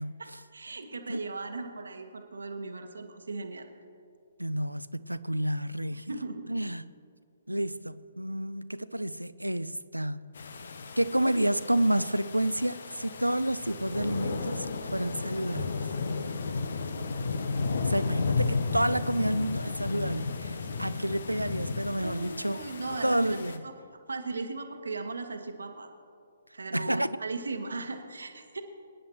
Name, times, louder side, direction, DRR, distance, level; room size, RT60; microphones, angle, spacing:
voice 1, 0.2-3.7 5.9-6.4 22.0-23.4 23.6-23.7 24.1-25.9 26.5-28.6, right 3 dB, 70° right, 1.2 m, -37 dB
voice 2, 4.4-6.1 6.5-6.9 7.5-10.2 11.0-15.9 17.8-22.6 23.0-23.6 26.7-27.1, right 1 dB, 90° right, 0.4 m, -30 dB
sound 1, 10.3-23.6, left 4 dB, 60° left, 0.8 m, -33 dB
24.5 x 10.0 x 3.0 m
figure-of-eight pair, 130°, 0 cm